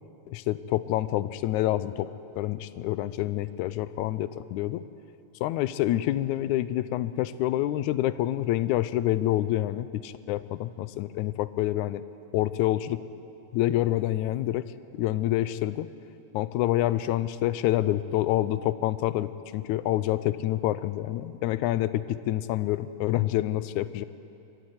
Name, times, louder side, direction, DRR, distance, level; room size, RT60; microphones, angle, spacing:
voice 1, 0.3-2.1 2.4-4.8 5.4-12.0 12.3-13.0 13.5-15.9 16.3-24.1, left 14 dB, 85° left, 15 dB, 2.0 m, -27 dB
23.5 x 13.0 x 9.5 m, 2.8 s
omnidirectional pair, 3.4 m